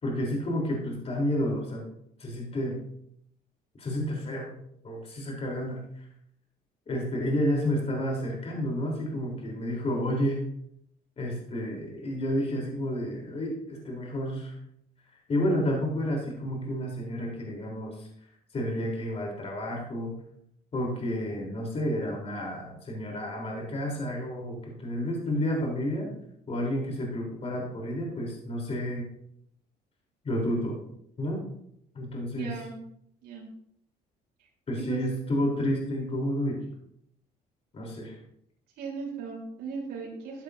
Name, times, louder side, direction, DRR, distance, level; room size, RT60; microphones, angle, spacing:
voice 1, 0.0-1.9 2.2-2.8 3.8-4.6 4.8-6.1 6.9-10.5 11.2-14.5 15.3-18.1 18.5-20.1 20.7-26.1 26.5-29.1 30.2-30.8 31.2-31.4 31.9-32.6 34.7-36.6 37.7-38.2, equal, 35° left, -1 dB, 3.6 m, -30 dB
voice 2, 32.4-32.8 33.2-33.5 34.8-35.0 38.8-40.4, right 4 dB, 75° right, -2 dB, 3.7 m, -38 dB
13.5 x 9.8 x 2.7 m, 0.72 s
cardioid pair, 110°, 17 cm